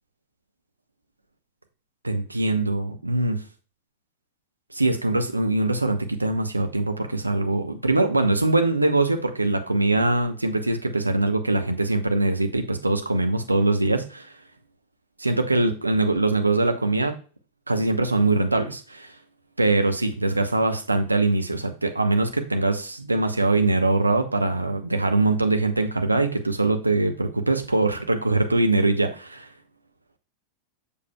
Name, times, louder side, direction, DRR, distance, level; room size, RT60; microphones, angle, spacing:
voice 1, 2.0-3.4 4.7-14.3 15.2-17.2 17.7-19.1 19.6-29.5, right 2 dB, 85° right, 7 dB, 0.7 m, -22 dB
7.0 x 6.7 x 2.2 m, 0.37 s
figure-of-eight pair, 90°, 0 cm